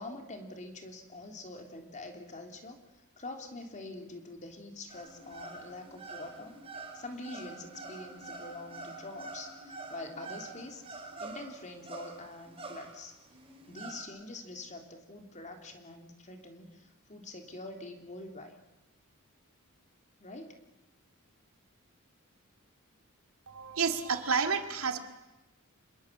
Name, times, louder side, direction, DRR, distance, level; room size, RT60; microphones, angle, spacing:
voice 1, 0.0-2.8 3.2-6.6 6.9-13.1 13.7-18.6 20.2-20.6, left 2 dB, 35° left, 5 dB, 3.3 m, -45 dB
sound 1, 4.9-14.0, right 3 dB, 25° right, 4.8 m, -46 dB
voice 2, 23.5-25.0, right 5 dB, 75° right, 7 dB, 2.4 m, -30 dB
27.5 x 21.0 x 7.5 m, 1.0 s
head